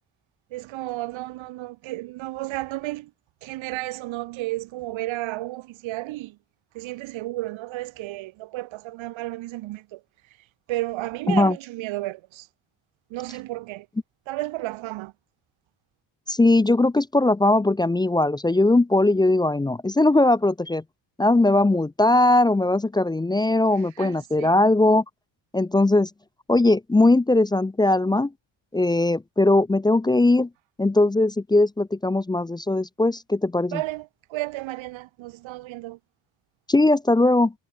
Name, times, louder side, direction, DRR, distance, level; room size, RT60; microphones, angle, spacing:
voice 1, 0.5-3.1 3.4-6.4 6.7-10.0 10.7-12.5 13.1-13.9 14.3-15.1 24.0-24.5 33.7-36.0, right 18 dB, 85° right, 1.0 m, -32 dB
voice 2, 16.3-20.8 21.2-25.0 25.5-26.1 26.5-28.3 28.7-30.5 30.8-33.8 36.7-37.5, left 2 dB, 10° left, 0.6 m, -19 dB
cardioid pair, 170°, 45 cm